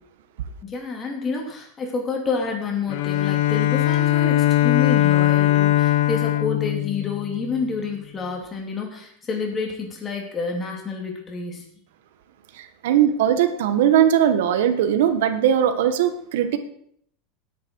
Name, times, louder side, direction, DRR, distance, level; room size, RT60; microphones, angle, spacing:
voice 1, 0.6-11.6, left 4 dB, 20° left, 1 dB, 3.1 m, -29 dB
Bowed string instrument, 2.9-7.7, left 14 dB, 65° left, 0.9 m, -20 dB
voice 2, 12.6-16.6, right 9 dB, 80° right, 9 dB, 1.5 m, -19 dB
17.5 x 9.4 x 4.7 m, 0.67 s
supercardioid pair, 160°, 0 cm